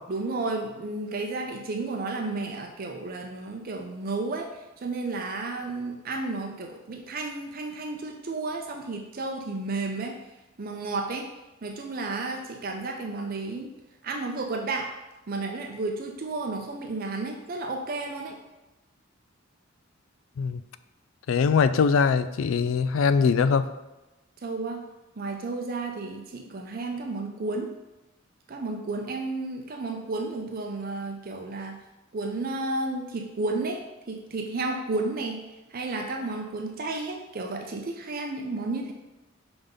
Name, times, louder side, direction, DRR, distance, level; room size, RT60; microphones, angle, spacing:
voice 1, 0.1-10.1 10.6-11.3 11.6-13.7 14.0-14.9 15.3-18.4 24.4-24.8 25.2-27.7 28.5-31.8 32.1-35.4 35.7-38.9, right 3 dB, 45° right, 3 dB, 0.5 m, -32 dB
voice 2, 21.3-23.7, left 5 dB, 70° left, 13 dB, 0.3 m, -22 dB
5.5 x 3.5 x 5.2 m, 1.0 s
head